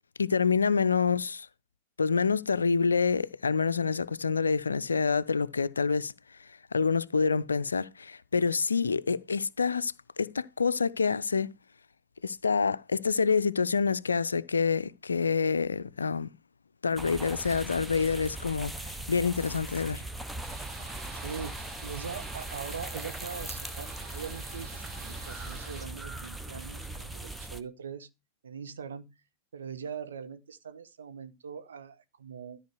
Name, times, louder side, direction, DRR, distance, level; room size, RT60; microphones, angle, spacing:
voice 1, 0.2-1.5 2.0-6.1 6.7-11.5 12.2-16.3 16.8-20.0, left 5 dB, 75° left, 0.5 m, -27 dB
sound 1, 17.0-27.6, right 2 dB, 5° right, 0.9 m, -40 dB
sound 2, 20.4-25.9, right 4 dB, 30° right, 3.2 m, -47 dB
voice 2, 20.9-28.1 28.4-29.1 29.5-32.6, right 6 dB, 65° right, 1.2 m, -42 dB
13.5 x 4.9 x 6.2 m
figure-of-eight pair, 90°, 0 cm